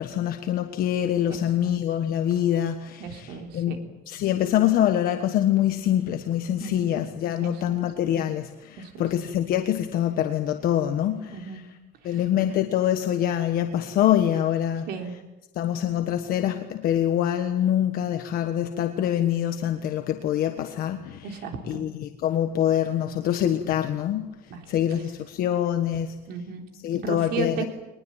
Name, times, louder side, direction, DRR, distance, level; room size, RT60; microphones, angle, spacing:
voice 1, 0.0-3.7 4.1-11.6 12.0-14.9 15.6-21.3 21.7-24.4 24.7-26.1 26.8-27.6, left 11 dB, 55° left, 6 dB, 1.4 m, -25 dB
voice 2, 3.0-3.8 6.6-6.9 7.4-7.8 8.8-9.0 11.3-11.6 12.0-12.2 14.9-15.1 21.2-21.8 24.5-24.6 25.0-25.1 26.3-26.7 27.0-27.7, right 5 dB, 70° right, 4 dB, 3.6 m, -34 dB
23.0 x 20.5 x 9.1 m, 1.1 s
cardioid pair, 175°, 17 cm